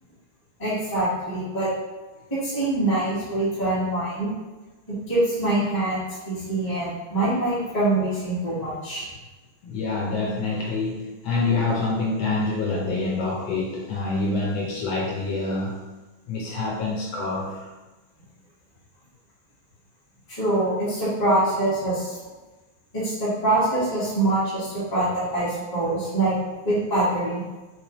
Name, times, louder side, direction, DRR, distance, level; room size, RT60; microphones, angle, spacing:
voice 1, 0.6-1.7 2.3-4.3 5.1-9.0 20.3-22.2 22.9-26.4 26.6-27.4, right 2 dB, 15° left, -10 dB, 0.9 m, -24 dB
voice 2, 9.6-15.8 16.3-17.7, left 3 dB, 70° left, -4 dB, 1.3 m, -26 dB
3.4 x 3.1 x 2.9 m, 1.2 s
omnidirectional pair, 2.3 m